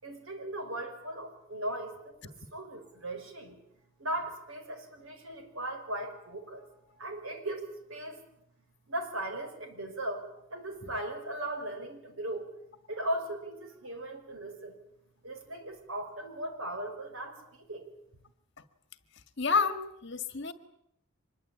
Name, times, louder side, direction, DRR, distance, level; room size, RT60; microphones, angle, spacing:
voice 1, 0.0-3.6 4.0-8.2 8.9-12.5 12.9-14.8 15.2-17.9, right 1 dB, 70° right, 6 dB, 5.7 m, -38 dB
voice 2, 19.4-20.5, left 5 dB, 50° left, 10 dB, 1.9 m, -29 dB
25.5 x 22.0 x 8.6 m, 0.77 s
head